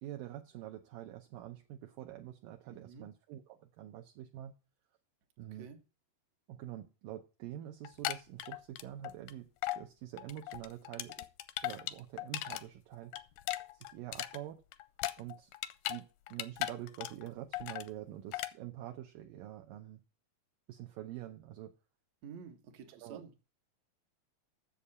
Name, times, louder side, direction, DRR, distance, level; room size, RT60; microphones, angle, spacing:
voice 1, 0.0-4.5 5.4-5.7 6.5-11.3 11.6-13.2 13.7-14.6 15.2-15.5 15.8-20.0 20.7-21.7 23.0-23.2, right 13 dB, 75° right, 2.3 m, -46 dB
voice 2, 2.7-3.1 5.5-5.8 22.2-23.3, right 6 dB, 60° right, 2.3 m, -50 dB
sound 1, 7.8-9.3 9.6-9.8 10.2-12.6 12.9-16.0 16.3-17.3 17.5-17.9 18.3-18.5, left 15 dB, 80° left, 1.8 m, -38 dB
7.7 x 7.2 x 8.3 m
omnidirectional pair, 4.2 m